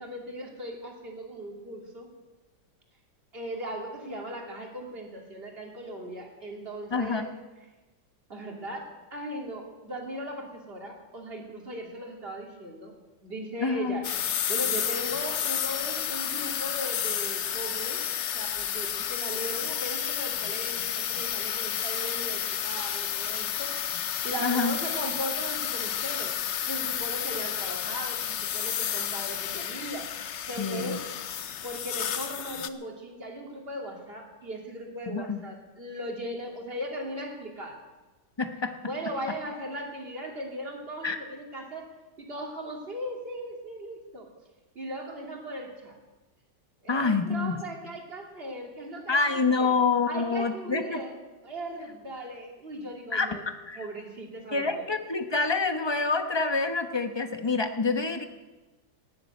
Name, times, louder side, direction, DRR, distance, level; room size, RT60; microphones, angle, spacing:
voice 1, 0.0-2.1 3.3-7.3 8.3-12.9 13.2-14.1 14.5-18.0 18.3-23.8 24.2-26.3 26.7-30.1 30.5-37.8 38.8-41.9 42.2-44.3 44.7-46.0 46.8-49.7 50.1-51.1 51.4-53.4 53.7-54.9, right 1 dB, 30° right, 0 dB, 2.8 m, -38 dB
voice 2, 6.9-7.2 13.6-14.0 24.4-24.8 30.6-31.0 35.1-35.4 38.4-38.7 41.0-41.2 46.9-47.6 49.1-51.0 53.1-53.4 53.7-53.8 54.5-58.2, left 4 dB, 20° left, 7 dB, 0.7 m, -27 dB
sound 1, 14.0-32.7, left 9 dB, 75° left, 0.6 m, -31 dB
18.0 x 7.6 x 9.4 m, 1.2 s
omnidirectional pair, 2.0 m